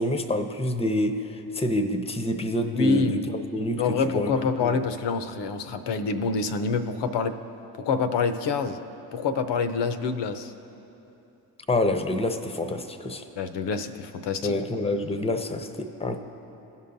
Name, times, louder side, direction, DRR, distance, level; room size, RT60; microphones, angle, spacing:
voice 1, 0.0-4.3 4.6-4.7 11.7-13.2 14.4-16.2, left 1 dB, 15° left, 8 dB, 0.7 m, -27 dB
voice 2, 2.7-3.3 3.8-7.4 7.8-8.8 9.1-10.5 13.4-14.6, left 4 dB, 65° left, 10 dB, 0.7 m, -26 dB
17.0 x 5.6 x 2.6 m, 3.0 s
hypercardioid pair, 50°, 46 cm